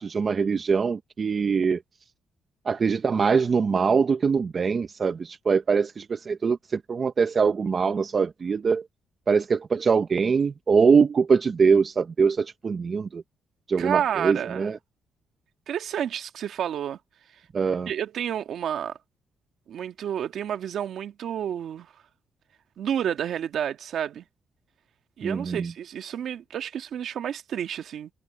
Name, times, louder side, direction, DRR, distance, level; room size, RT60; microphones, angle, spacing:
voice 1, 0.0-1.8 2.7-8.8 9.3-13.2 13.7-14.8 17.5-17.9 25.2-25.7, right 5 dB, 40° right, 0.8 m, -23 dB
voice 2, 13.8-14.7 15.7-17.0 17.9-19.0 19.7-21.9 22.8-24.2 25.2-28.1, right 9 dB, 65° right, 1.7 m, -30 dB
cardioid pair, 90°, 0 cm